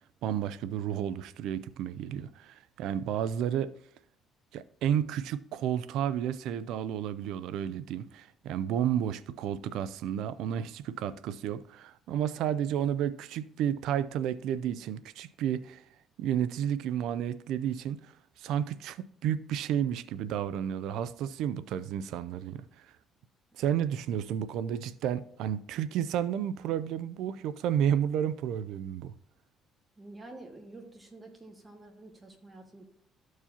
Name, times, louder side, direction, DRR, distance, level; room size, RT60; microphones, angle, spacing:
voice 1, 0.2-3.7 4.5-15.8 16.2-18.0 18.4-22.6 23.6-29.1, right 9 dB, 80° right, 0.4 m, -31 dB
voice 2, 30.0-32.8, right 2 dB, 15° right, 1.8 m, -49 dB
13.5 x 4.7 x 2.9 m
cardioid pair, 100°, 0 cm